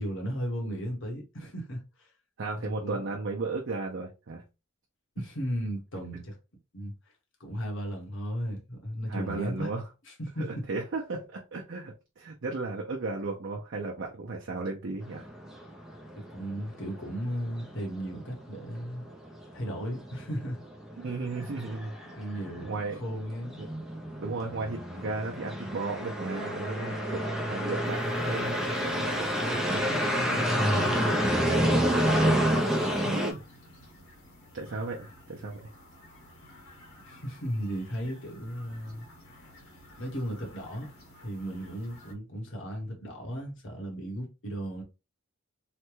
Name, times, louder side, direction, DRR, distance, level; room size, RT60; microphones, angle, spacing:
voice 1, 0.0-2.1 2.5-3.0 5.2-6.4 6.7-6.9 7.4-9.7 10.1-10.6 16.1-19.0 19.5-20.6 22.0-23.6 29.4-31.9 37.0-39.1 40.0-40.9 41.2-44.8, equal, 60° left, 1.2 m, -35 dB
voice 2, 2.4-4.4 9.1-9.8 10.4-15.3 21.0-21.9 22.6-23.0 23.6-23.7 24.2-29.3 33.0-33.4 34.5-35.7, right 3 dB, 55° right, 0.6 m, -35 dB
sound 1, 15.1-33.3, equal, ahead, 0.6 m, -29 dB
sound 2, 27.8-42.1, left 1 dB, 75° left, 1.8 m, -52 dB
3.2 x 2.2 x 3.0 m
head